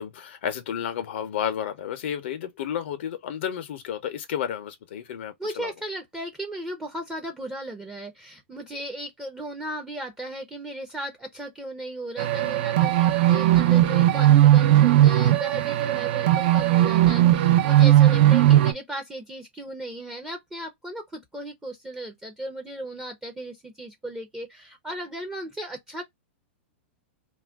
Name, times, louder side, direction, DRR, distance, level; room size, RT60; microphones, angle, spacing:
voice 1, 0.0-5.7, left 9 dB, 70° left, 0.5 m, -31 dB
voice 2, 5.4-26.0, right 1 dB, 10° right, 0.5 m, -36 dB
sound 1, 12.2-18.7, right 13 dB, 60° right, 0.4 m, -18 dB
2.3 x 2.1 x 3.3 m
hypercardioid pair, 140°, 6 cm